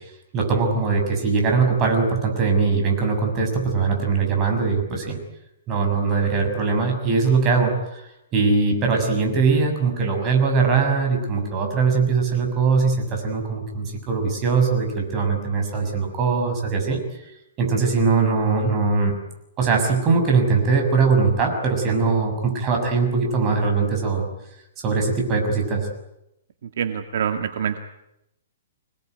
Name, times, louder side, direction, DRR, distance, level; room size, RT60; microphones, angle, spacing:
voice 1, 0.3-5.2 5.7-8.1 8.3-17.0 17.6-19.2 19.6-24.3 24.8-25.9, right 4 dB, 20° right, 2 dB, 6.7 m, -21 dB
voice 2, 26.8-27.8, right 8 dB, 60° right, 7 dB, 1.9 m, -25 dB
27.0 x 20.0 x 9.4 m, 0.84 s
hypercardioid pair, 165°, 0 cm